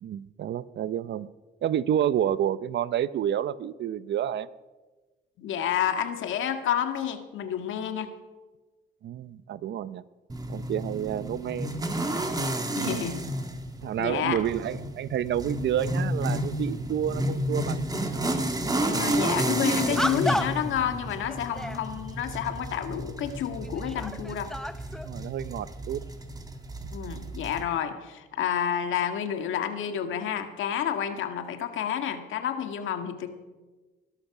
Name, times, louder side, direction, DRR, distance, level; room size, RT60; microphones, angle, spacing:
voice 1, 0.0-1.3 1.6-4.5 9.0-10.0 10.5-11.7 12.7-13.1 13.8-18.5 19.1-19.2 20.4-20.5 25.0-26.0, right 10 dB, 65° right, 17 dB, 0.7 m, -29 dB
voice 2, 5.4-8.1 12.8-13.3 14.0-14.4 18.8-24.5 26.9-33.3, left 9 dB, 80° left, 7 dB, 1.7 m, -30 dB
sound 1, 10.3-27.6, right 1 dB, 20° right, 1.9 m, -31 dB
sound 2, 19.2-19.3 19.9-20.7 21.3-21.9 22.8-22.9 23.6-25.2, left 1 dB, 5° left, 0.5 m, -32 dB
20.0 x 12.0 x 6.0 m, 1.3 s
cardioid pair, 90°, 20 cm